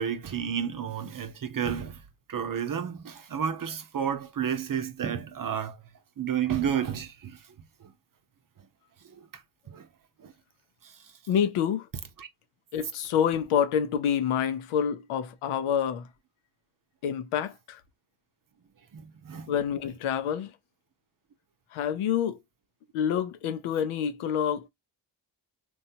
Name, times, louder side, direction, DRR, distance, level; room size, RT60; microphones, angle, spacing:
voice 1, 0.0-5.8 6.2-7.9 9.0-9.9 10.2-10.3 10.8-11.2 12.2-12.3 18.9-19.5, right 8 dB, 45° right, 0.7 m, -32 dB
voice 2, 11.3-11.9 12.7-16.1 17.0-17.8 19.5-20.5 21.7-22.4 22.9-24.7, left 8 dB, 85° left, 0.6 m, -27 dB
3.0 x 2.3 x 2.6 m
supercardioid pair, 40°, 49 cm